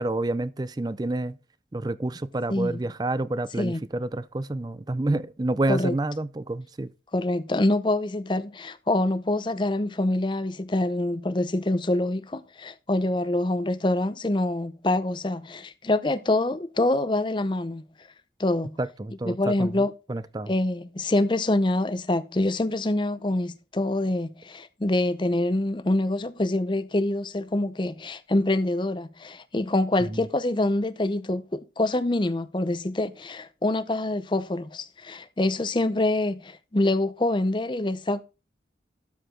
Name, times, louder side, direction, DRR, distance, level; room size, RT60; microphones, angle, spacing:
voice 1, 0.0-1.4 1.7-6.9 18.8-19.8 20.1-20.5 30.0-30.2, right 2 dB, 20° right, 0.4 m, -28 dB
voice 2, 7.1-17.8 18.4-18.8 19.2-19.9 20.5-38.2, left 1 dB, 25° left, 0.6 m, -25 dB
12.5 x 4.8 x 3.8 m
head